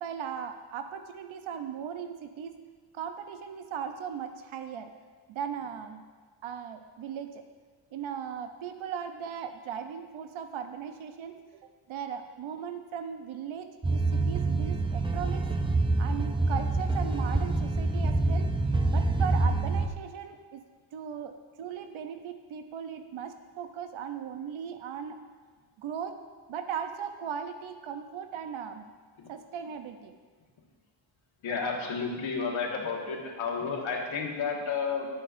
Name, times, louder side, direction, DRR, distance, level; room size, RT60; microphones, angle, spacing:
voice 1, 0.0-2.6 2.9-4.9 5.3-6.0 6.4-7.4 7.9-11.4 11.9-15.5 16.0-18.5 18.9-20.6 20.9-25.2 25.8-26.2 26.5-28.9 29.3-30.2, right 7 dB, 75° right, 8 dB, 0.7 m, -38 dB
sound 1, 13.8-19.9, right 2 dB, 10° right, 0.4 m, -26 dB
voice 2, 31.4-35.1, left 5 dB, 75° left, -1 dB, 1.7 m, -31 dB
11.5 x 8.9 x 2.6 m, 1.5 s
wide cardioid pair, 135°, 48 cm